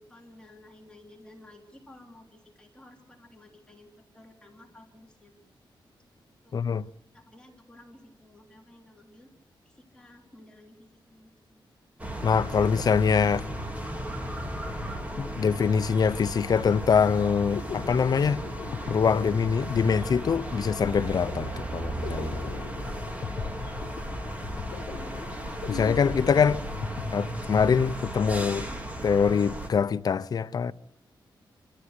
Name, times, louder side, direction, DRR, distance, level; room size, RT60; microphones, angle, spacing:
voice 1, 0.0-5.3 6.4-6.6 7.1-9.3 9.6-11.6 24.5-25.3, left 1 dB, 10° left, 3.2 m, -53 dB
voice 2, 6.5-6.9 12.2-13.4 15.2-18.4 18.9-22.3 25.7-26.6 27.1-28.7 29.0-30.7, left 6 dB, 50° left, 0.7 m, -24 dB
sound 1, 12.0-29.7, right 1 dB, 15° right, 2.3 m, -35 dB
sound 2, 17.5-28.0, left 7 dB, 80° left, 0.9 m, -40 dB
28.0 x 13.5 x 8.1 m
wide cardioid pair, 135°, 9 cm